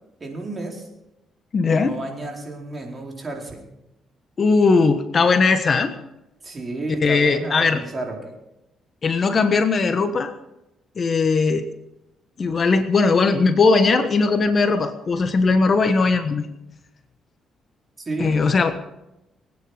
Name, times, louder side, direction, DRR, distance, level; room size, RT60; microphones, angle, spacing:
voice 1, 0.2-0.9 1.7-3.6 6.4-8.2 18.0-18.4, right 2 dB, 30° right, 0 dB, 4.4 m, -31 dB
voice 2, 1.5-2.0 4.4-5.9 7.0-7.8 9.0-10.3 11.0-11.7 12.4-16.5 18.2-18.8, left 4 dB, 45° left, 9 dB, 1.3 m, -19 dB
23.5 x 9.7 x 5.2 m, 0.91 s
cardioid pair, 90°, 0 cm